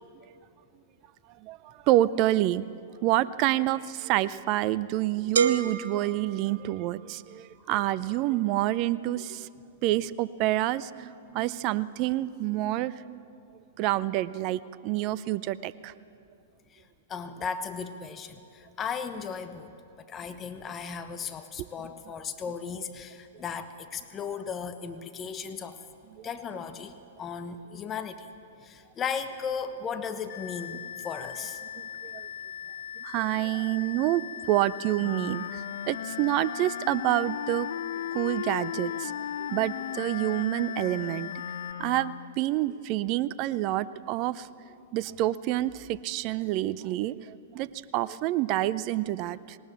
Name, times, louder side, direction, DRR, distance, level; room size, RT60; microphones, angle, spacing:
voice 1, 1.4-9.5 9.8-13.3 13.8-15.9 21.6-21.7 26.2-26.3 31.8-32.3 33.0-37.7 38.1-41.3 41.8-44.5 44.9-49.6, right 15 dB, 40° right, 17 dB, 0.5 m, -28 dB
sound 1, 5.4-7.2, right 6 dB, 75° right, 0.9 m, -29 dB
voice 2, 17.1-19.7 20.0-25.8 26.2-28.3 28.6-31.6, left 6 dB, 25° left, 9 dB, 1.2 m, -36 dB
sound 2, 30.3-41.7, left 9 dB, 45° left, 1.5 m, -40 dB
Wind instrument woodwind instrument, 35.0-42.4, left 10 dB, 65° left, 0.4 m, -37 dB
19.5 x 19.0 x 7.3 m, 2.5 s
hypercardioid pair, 110°, 0 cm